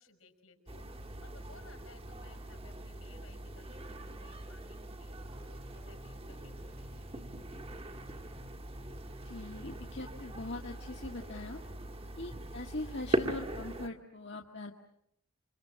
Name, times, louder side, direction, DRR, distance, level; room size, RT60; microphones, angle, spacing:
voice 1, 0.0-7.3 12.0-12.1, left 3 dB, 80° left, 6 dB, 5.8 m, -61 dB
sound 1, 0.7-13.9, right 1 dB, 25° right, 1.8 m, -41 dB
sound 2, 5.3-10.5, equal, 75° right, 2.3 m, -55 dB
voice 2, 9.2-11.6 12.2-14.7, left 2 dB, 55° left, 2 dB, 1.8 m, -41 dB
28.5 x 26.0 x 7.5 m, 0.76 s
head